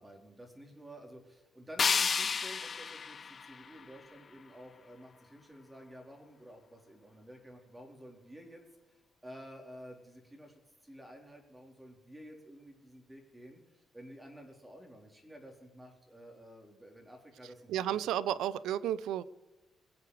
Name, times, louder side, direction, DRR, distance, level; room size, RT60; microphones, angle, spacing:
voice 1, 0.0-8.6 8.9-17.9, equal, 10° right, 2 dB, 4.1 m, -52 dB
sound 1, 1.8-4.8, left 5 dB, 40° left, 0.5 m, -33 dB
voice 2, 17.7-19.2, right 11 dB, 85° right, 18 dB, 0.6 m, -32 dB
23.0 x 8.4 x 4.9 m, 1.1 s
cardioid pair, 90°, 0 cm